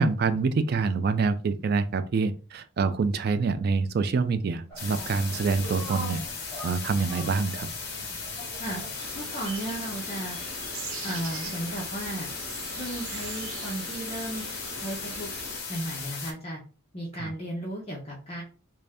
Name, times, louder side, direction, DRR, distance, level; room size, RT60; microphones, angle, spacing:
voice 1, 0.0-6.2 6.6-7.7 17.1-17.3, right 4 dB, 45° right, 11 dB, 0.3 m, -26 dB
sound 1, 4.7-10.2, equal, 5° left, 1.7 m, -43 dB
sound 2, 4.8-16.3, left 4 dB, 50° left, 1.0 m, -37 dB
sound 3, 9.0-15.6, right 4 dB, 85° right, 0.8 m, -41 dB
voice 2, 9.2-10.4 11.0-12.3 12.8-14.4 14.8-15.3 15.7-16.6 16.9-18.4, right 1 dB, 30° left, -3 dB, 0.7 m, -34 dB
3.2 x 2.6 x 3.4 m, 0.35 s
head